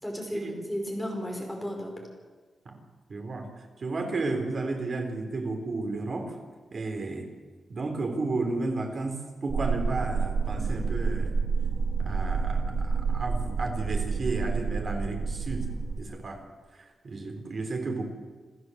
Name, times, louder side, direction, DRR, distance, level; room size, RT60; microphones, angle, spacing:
voice 1, 0.0-2.1, equal, ahead, 0 dB, 5.2 m, -34 dB
voice 2, 3.1-3.5 3.8-6.4 6.7-7.3 7.7-11.4 12.0-15.7 16.0-16.4 16.7-18.1, right 3 dB, 45° right, 4 dB, 3.7 m, -32 dB
sound 1, 9.5-16.0, right 5 dB, 65° right, 3.0 m, -29 dB
27.5 x 14.5 x 7.9 m, 1.4 s
wide cardioid pair, 150°, 0 cm